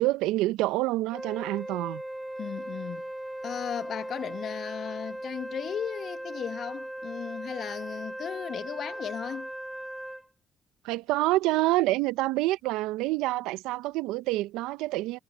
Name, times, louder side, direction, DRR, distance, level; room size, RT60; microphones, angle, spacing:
voice 1, 0.0-2.0 10.8-15.2, right 18 dB, 80° right, 0.9 m, -27 dB
Wind instrument woodwind instrument, 1.1-10.3, right 1 dB, 5° right, 1.0 m, -38 dB
voice 2, 2.4-3.0 3.4-9.5, left 8 dB, 60° left, 1.6 m, -36 dB
hypercardioid pair, 50°, 0 cm